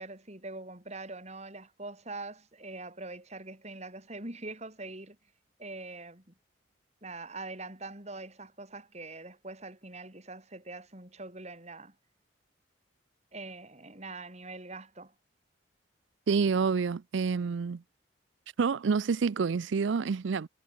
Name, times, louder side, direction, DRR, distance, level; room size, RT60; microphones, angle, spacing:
voice 1, 0.0-5.2 5.6-6.3 7.0-11.9 13.3-15.1, right 2 dB, 35° right, 4.1 m, -43 dB
voice 2, 16.3-17.8 18.6-20.5, right 5 dB, 70° right, 0.4 m, -28 dB
head